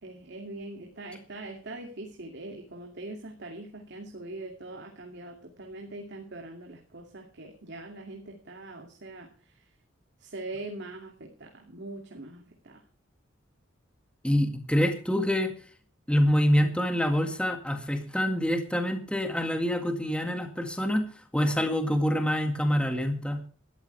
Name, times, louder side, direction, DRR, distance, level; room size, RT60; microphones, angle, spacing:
voice 1, 0.0-9.6 10.2-12.8, right 2 dB, 60° right, 2 dB, 2.6 m, -42 dB
voice 2, 14.2-15.5 16.1-21.0 21.3-23.4, equal, 5° left, 6 dB, 1.9 m, -26 dB
18.0 x 13.5 x 3.4 m, 0.41 s
head